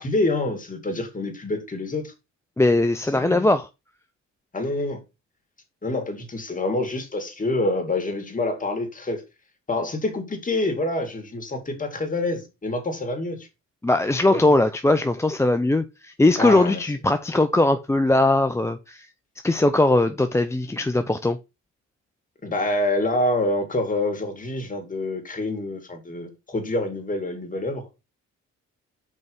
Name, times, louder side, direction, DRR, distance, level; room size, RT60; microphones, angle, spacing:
voice 1, 0.0-2.1 3.0-3.5 4.5-5.0 5.8-9.2 9.7-13.5 14.3-14.5 16.4-16.8 22.4-27.9, left 2 dB, 25° left, 2.5 m, -27 dB
voice 2, 2.6-3.7 13.8-19.1 19.4-21.4, left 2 dB, 10° left, 0.5 m, -20 dB
5.4 x 4.7 x 5.5 m
cardioid pair, 90°, 30 cm